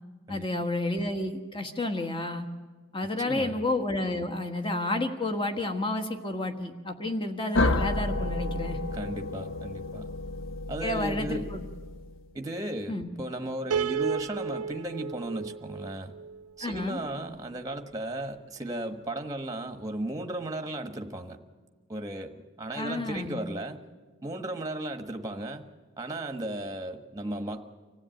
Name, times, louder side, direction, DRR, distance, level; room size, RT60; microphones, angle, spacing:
voice 1, 0.3-2.5 2.9-8.8 10.8-11.6 12.9-13.1 16.6-17.0 22.7-23.4, left 2 dB, 20° left, 5 dB, 1.5 m, -31 dB
voice 2, 3.2-3.6 8.9-10.1 10.7-11.5 12.3-16.1 16.6-21.4 21.9-23.8 24.2-25.7 26.0-27.6, right 1 dB, 15° right, 6 dB, 1.2 m, -35 dB
sound 1, 7.5-12.2, left 2 dB, 55° left, 0.8 m, -31 dB
Piano, 13.7-16.9, right 6 dB, 85° right, 0.7 m, -33 dB
25.5 x 16.0 x 9.1 m, 1.4 s
head